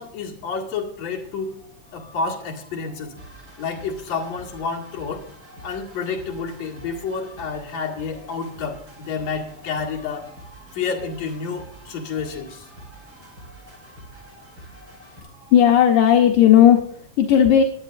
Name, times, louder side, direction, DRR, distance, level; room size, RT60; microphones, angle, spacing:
voice 1, 0.0-1.5 1.9-3.1 3.6-5.3 5.6-10.3 10.7-12.7, left 5 dB, 60° left, -2 dB, 3.2 m, -29 dB
sound 1, 1.1-16.4, equal, 40° left, 6.2 m, -51 dB
sound 2, 3.2-15.2, right 2 dB, 30° right, 6.1 m, -47 dB
voice 2, 15.5-17.6, left 10 dB, 75° left, 2 dB, 2.3 m, -14 dB
20.5 x 8.3 x 2.5 m, 0.64 s
omnidirectional pair, 3.6 m